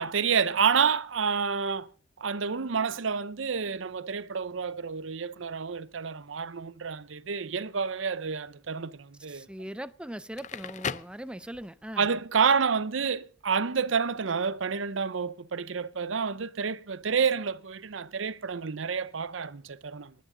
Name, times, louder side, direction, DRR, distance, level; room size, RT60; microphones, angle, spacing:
voice 1, 0.0-1.9 2.2-9.5 12.0-20.1, right 6 dB, 80° right, 0.7 m, -29 dB
voice 2, 9.3-12.1, right 1 dB, 5° right, 0.5 m, -40 dB
Crackle, 10.2-11.9, left 6 dB, 40° left, 0.5 m, -37 dB
20.0 x 9.5 x 3.8 m
head